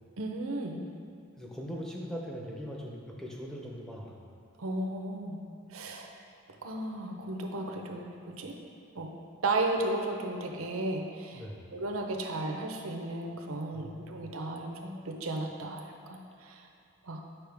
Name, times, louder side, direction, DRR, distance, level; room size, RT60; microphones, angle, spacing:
voice 1, 0.2-0.8 4.6-5.4 5.7-6.1 6.6-8.5 9.0-9.1 9.4-11.5 11.7-16.7 17.0-17.2, right 2 dB, 85° right, 2 dB, 0.7 m, -34 dB
voice 2, 1.4-4.2 11.3-11.7 13.7-14.3, equal, 5° left, -2 dB, 0.6 m, -41 dB
8.3 x 5.4 x 3.5 m, 2.4 s
head